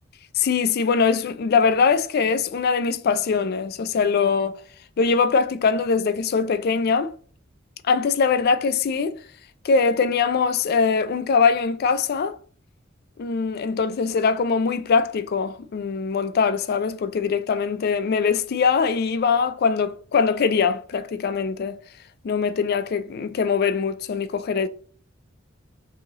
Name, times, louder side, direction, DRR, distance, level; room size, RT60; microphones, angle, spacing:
voice 1, 0.4-4.6 5.0-7.1 7.9-9.2 9.6-12.4 13.2-21.8 22.2-24.7, left 5 dB, 50° left, 0.3 m, -22 dB
3.0 x 2.7 x 3.5 m
head